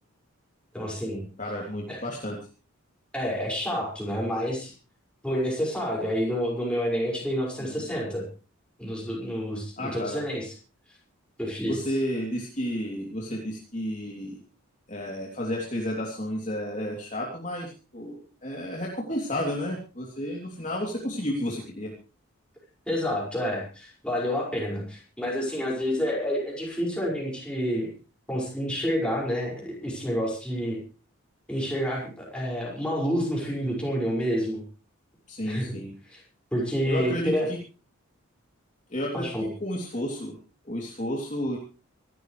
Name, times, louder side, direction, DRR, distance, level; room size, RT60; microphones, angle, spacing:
voice 1, 0.7-1.3 1.9-2.0 3.1-4.7 5.2-8.2 8.8-10.5 11.4-11.8 22.9-27.9 28.3-30.8 31.5-34.6 35.4-35.8 36.1-36.2 36.5-37.5 39.1-39.4, equal, 5° left, -3 dB, 5.7 m, -29 dB
voice 2, 1.4-2.4 7.6-7.8 9.8-10.2 11.6-14.4 14.9-21.9 35.3-35.9 36.8-37.6 38.9-40.3 40.6-41.6, equal, 35° left, -2 dB, 3.1 m, -32 dB
26.0 x 13.0 x 3.3 m, 0.34 s
head